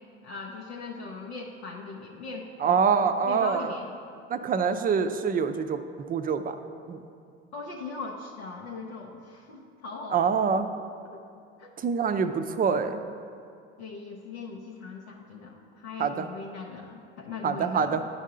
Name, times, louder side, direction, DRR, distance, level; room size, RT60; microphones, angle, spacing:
voice 1, 0.2-2.8 3.2-3.9 7.5-10.6 11.0-11.2 11.6-11.7 13.8-18.0, left 4 dB, 85° left, -1 dB, 0.7 m, -40 dB
voice 2, 2.6-3.7 4.3-5.8 6.1-6.6 6.9-7.0 10.1-10.7 11.8-13.0 16.0-16.3 17.4-18.0, right 6 dB, 25° right, 9 dB, 0.5 m, -25 dB
9.5 x 5.4 x 3.8 m, 2.4 s
hypercardioid pair, 65°, 34 cm